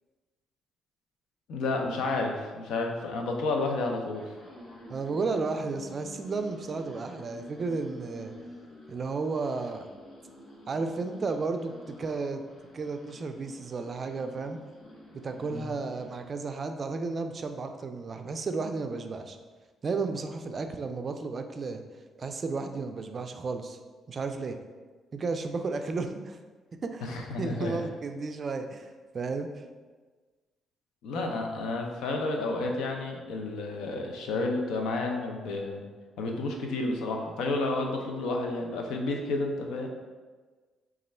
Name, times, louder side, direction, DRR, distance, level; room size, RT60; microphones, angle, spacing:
voice 1, 1.5-4.2 15.5-15.7 27.0-27.8 31.0-35.8 36.2-39.9, left 2 dB, 85° left, 2 dB, 0.5 m, -31 dB
sound 1, 4.1-16.3, left 1 dB, 65° left, 1.1 m, -49 dB
voice 2, 4.9-8.3 8.9-9.9 10.7-12.4 12.7-14.6 15.1-19.4 19.8-21.8 22.2-23.8 24.1-24.6 25.1-26.4 26.8-27.1 27.4-29.5, right 4 dB, 45° right, 7 dB, 0.3 m, -33 dB
3.1 x 2.4 x 4.2 m, 1.4 s
cardioid pair, 90°, 0 cm